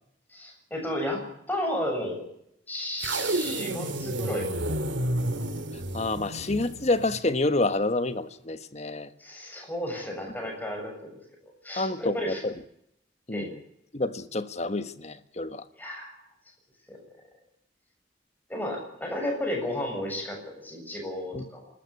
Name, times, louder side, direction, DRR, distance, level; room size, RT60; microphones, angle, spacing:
voice 1, 0.3-1.2 1.5-2.2 2.7-4.5 9.2-11.1 11.6-12.4 13.3-13.5 15.7-16.2 16.9-17.0 18.5-21.7, left 1 dB, 10° left, 7.4 m, -33 dB
sound 1, 3.0-7.3, right 1 dB, 85° right, 2.4 m, -31 dB
voice 2, 5.7-9.1 11.7-12.5 13.3-13.6 13.9-15.6 21.3-21.5, left 2 dB, 35° left, 1.2 m, -28 dB
28.5 x 13.5 x 8.5 m
head